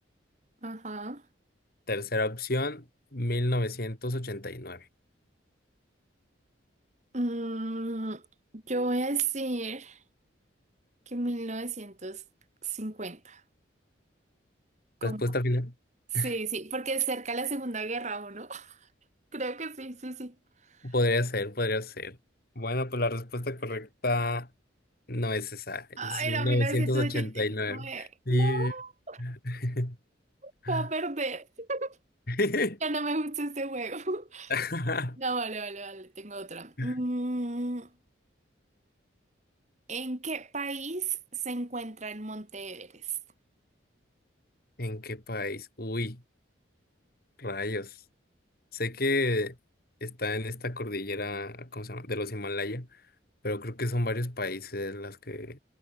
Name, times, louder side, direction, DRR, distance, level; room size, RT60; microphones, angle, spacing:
voice 1, 0.6-1.2 7.1-8.2 8.5-10.0 11.1-12.2 12.6-13.4 15.0-15.2 16.1-18.8 19.3-20.3 20.8-20.9 26.0-29.2 30.4-32.0 32.8-34.5 35.2-37.9 39.9-43.2, right 3 dB, 35° right, 2.7 m, -33 dB
voice 2, 1.9-2.8 3.1-4.9 15.0-15.7 16.1-16.3 20.8-22.2 22.6-24.5 25.1-28.7 29.2-30.0 30.6-30.9 32.3-32.8 34.5-35.2 36.8-36.9 44.8-46.2 47.4-48.0 48.7-49.6 50.0-52.9 53.4-55.6, left 1 dB, 50° left, 3.3 m, -30 dB
head